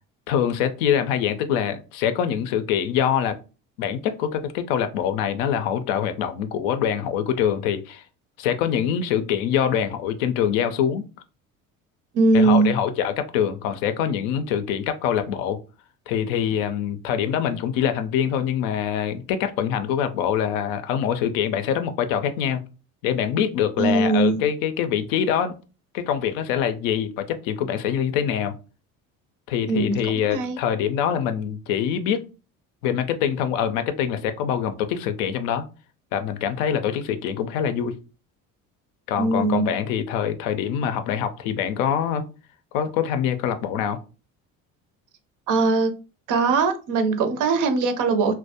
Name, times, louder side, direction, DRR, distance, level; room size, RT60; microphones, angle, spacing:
voice 1, 0.3-3.4 3.8-8.0 8.4-11.0 12.3-15.6 16.1-22.6 23.0-25.5 25.9-28.5 29.5-32.2 32.8-35.6 36.1-37.9 39.1-42.3 42.7-44.0, left 9 dB, 70° left, 0.5 m, -24 dB
voice 2, 12.1-12.7 23.8-24.4 29.7-30.6 39.2-39.7 45.5-45.9 46.3-48.4, right 3 dB, 50° right, 0.5 m, -20 dB
2.2 x 2.0 x 2.7 m
hypercardioid pair, 65°, 42 cm